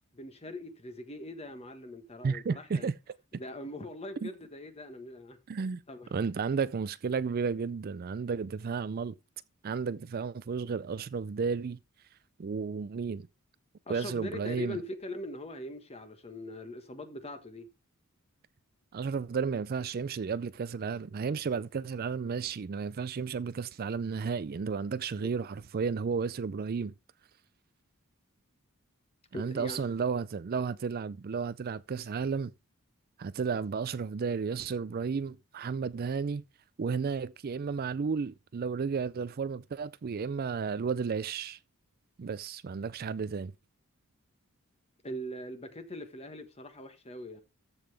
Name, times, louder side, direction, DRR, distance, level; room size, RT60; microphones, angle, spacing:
voice 1, 0.1-2.9 3.3-5.4 5.9-6.1 13.9-17.7 25.2-25.3 29.3-29.8 45.0-47.4, left 1 dB, 30° left, 1.4 m, -41 dB
voice 2, 2.2-2.9 4.2-4.3 5.5-5.8 6.1-9.2 9.6-11.8 12.4-13.3 13.9-14.8 18.9-26.9 29.3-32.5 33.2-36.4 36.8-41.6 42.2-43.5, right 5 dB, 45° right, 0.4 m, -33 dB
14.0 x 5.6 x 3.4 m
head